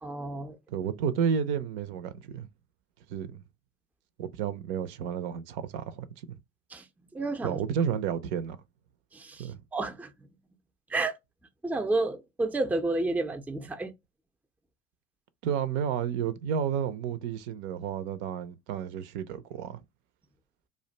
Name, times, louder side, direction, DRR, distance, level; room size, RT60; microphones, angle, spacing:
voice 1, 0.0-0.6 6.7-6.9 7.1-7.6 9.1-10.3 10.9-11.2 11.6-13.9, right 2 dB, 5° right, 0.4 m, -31 dB
voice 2, 0.7-2.5 3.1-3.4 4.2-6.4 7.4-8.6 9.4-9.6 15.4-19.8, right 8 dB, 65° right, 0.5 m, -31 dB
2.5 x 2.1 x 3.7 m
hypercardioid pair, 65°, 37 cm